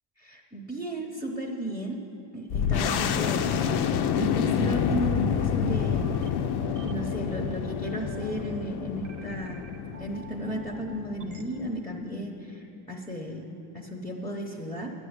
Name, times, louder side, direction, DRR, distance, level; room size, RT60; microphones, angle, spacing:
voice 1, 0.2-2.0 2.3-6.3 6.8-9.7 10.0-13.5 13.7-14.9, right 1 dB, 5° left, 1 dB, 0.8 m, -34 dB
sound 1, 2.5-11.7, left 8 dB, 65° left, 0.6 m, -28 dB
sound 2, 4.4-11.4, right 5 dB, 40° right, 0.8 m, -46 dB
10.0 x 7.0 x 8.0 m, 2.8 s
cardioid pair, 125°, 43 cm